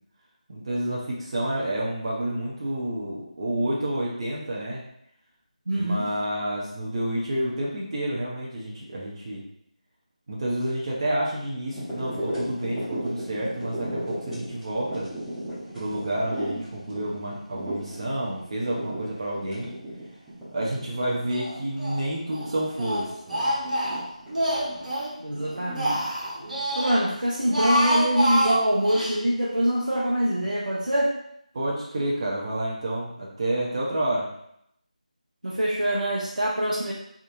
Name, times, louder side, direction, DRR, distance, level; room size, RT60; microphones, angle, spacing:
voice 1, 0.5-4.8 5.7-9.4 10.3-15.1 15.7-19.7 20.5-23.5 31.5-34.3, right 1 dB, 40° right, -5 dB, 0.9 m, -29 dB
voice 2, 5.7-6.1 25.2-26.0 26.7-31.1 35.4-36.9, right 1 dB, 90° right, -5 dB, 1.0 m, -24 dB
sound 1, 11.7-27.3 27.9-28.0, equal, 5° right, 1.0 m, -36 dB
Speech, 21.3-22.0 22.3-25.1 25.5-27.0 27.4-29.2, equal, 70° right, 1.5 m, -27 dB
3.6 x 2.5 x 4.4 m, 0.75 s
figure-of-eight pair, 165°, 4 cm